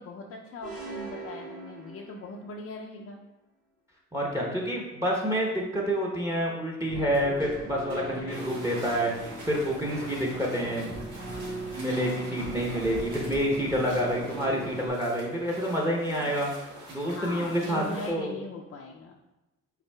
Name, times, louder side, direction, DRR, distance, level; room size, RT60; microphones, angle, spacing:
voice 1, 0.0-3.2 17.0-19.2, left 2 dB, 50° left, 0 dB, 0.5 m, -40 dB
sound 1, 0.6-2.6, right 3 dB, 25° right, 1.3 m, -41 dB
voice 2, 4.1-10.9 11.7-16.5 16.9-18.3, equal, 10° right, -1 dB, 0.8 m, -28 dB
Keyboard (musical), 6.9-14.9, right 2 dB, 60° right, 1.5 m, -39 dB
sound 2, 8.3-18.1, right 1 dB, 85° right, 1.6 m, -45 dB
5.7 x 4.0 x 2.3 m, 1.0 s
cardioid pair, 90°, 30 cm